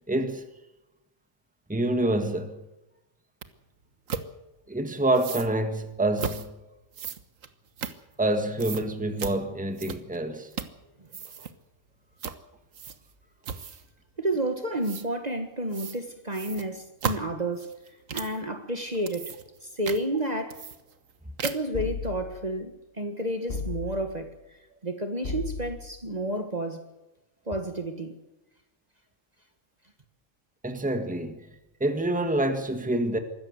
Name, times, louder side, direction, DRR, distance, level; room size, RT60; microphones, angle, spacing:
voice 1, 0.1-0.4 1.7-2.6 4.7-6.5 8.2-10.5 30.6-31.5 31.8-33.2, right 1 dB, 5° right, 1.7 m, -27 dB
sound 1, 3.4-3.5 4.1-4.3 5.1-5.5 6.2-6.5 6.9-8.3 8.6-8.9 9.2-9.4 9.8-10.2 10.5-10.8 11.1-11.5 12.2-12.4 12.7-13.1 13.4-13.9 14.8-15.1 15.7-16.0 16.3-18.4 18.9-19.6 19.8-20.0 20.5-21.1 21.4-21.8, right 6 dB, 75° right, 1.6 m, -35 dB
voice 2, 14.2-17.7 18.1-19.3 19.6-20.6 21.4-24.3 24.8-26.8 27.5-28.2, right 1 dB, 30° right, 1.8 m, -31 dB
sound 2, 21.7-22.5 23.5-24.2 25.2-26.0, left 4 dB, 50° left, 1.6 m, -35 dB
24.5 x 14.0 x 8.1 m
omnidirectional pair, 1.4 m